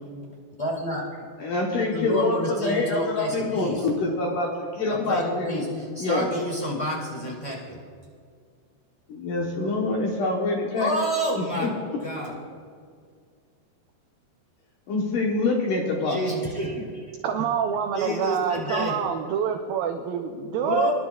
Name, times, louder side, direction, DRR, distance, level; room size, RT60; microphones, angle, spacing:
voice 1, 0.6-1.3 1.9-3.9 4.9-7.8 10.7-11.8 12.0-12.3 16.1-17.0 17.9-19.0 20.6-20.9, equal, 10° left, -5 dB, 1.6 m, -29 dB
voice 2, 1.4-5.6 6.0-6.3 9.1-10.9 11.3-11.7 14.9-16.2, left 2 dB, 65° left, -1 dB, 2.3 m, -26 dB
voice 3, 17.2-20.9, right 7 dB, 85° right, 5 dB, 2.0 m, -26 dB
26.0 x 11.0 x 2.4 m, 2.2 s
omnidirectional pair, 4.8 m